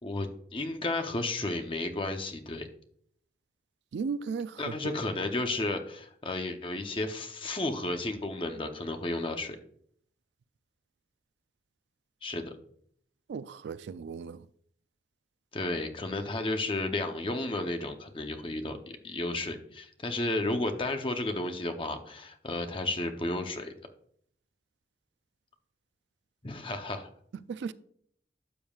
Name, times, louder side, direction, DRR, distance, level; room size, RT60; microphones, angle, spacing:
voice 1, 0.0-2.7 4.6-9.6 12.2-12.5 15.5-23.7 26.4-27.1, left 2 dB, 30° left, 0.7 m, -33 dB
voice 2, 3.9-4.5 13.3-14.4 27.5-27.7, right 5 dB, 75° right, 0.3 m, -35 dB
12.0 x 7.0 x 2.4 m
head